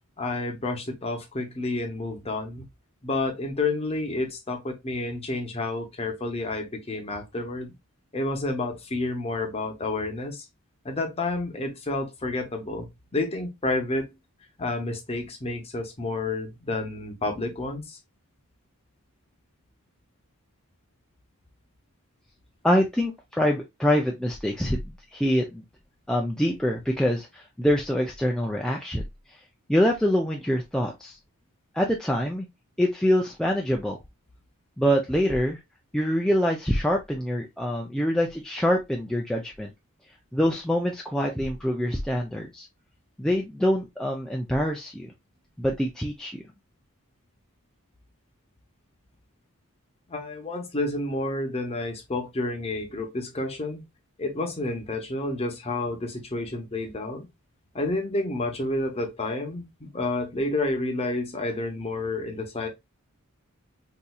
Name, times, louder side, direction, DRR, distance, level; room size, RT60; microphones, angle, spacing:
voice 1, 0.2-2.7 3.0-7.7 8.1-10.5 10.8-14.1 14.6-18.0 50.1-53.8 54.2-57.3 57.7-62.7, left 2 dB, 25° left, 0.8 m, -30 dB
voice 2, 22.6-25.6 26.1-29.0 29.7-31.2 31.7-32.5 32.8-34.0 34.8-35.6 35.9-39.7 40.3-42.7 43.2-45.1 45.6-46.4, equal, 5° left, 0.3 m, -25 dB
4.1 x 2.6 x 2.2 m
head